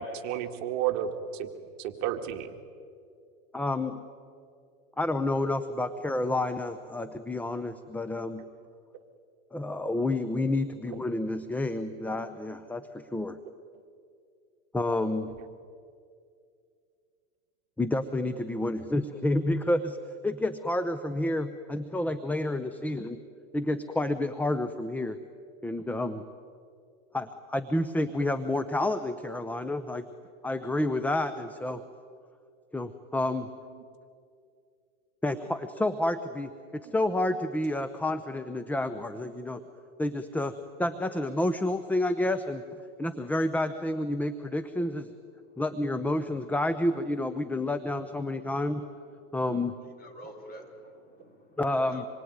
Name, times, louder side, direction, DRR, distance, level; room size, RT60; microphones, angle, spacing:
voice 1, 0.0-1.5 1.8-2.5 10.9-11.0 15.4-15.5, right 10 dB, 45° right, 5 dB, 2.0 m, -32 dB
voice 2, 3.5-4.0 5.0-8.4 9.5-13.4 14.7-15.3 17.8-20.0 20.2-23.2 23.5-25.2 25.6-26.2 27.1-30.0 30.4-31.8 32.7-33.5 35.2-39.6 40.0-40.5 40.8-42.6 43.0-45.1 45.6-48.9 49.3-49.8 51.6-52.1, left 1 dB, 5° left, 10 dB, 0.7 m, -29 dB
voice 3, 50.0-52.1, equal, 20° left, 2 dB, 4.9 m, -48 dB
26.5 x 22.5 x 9.6 m, 2.3 s
supercardioid pair, 130°, 40 cm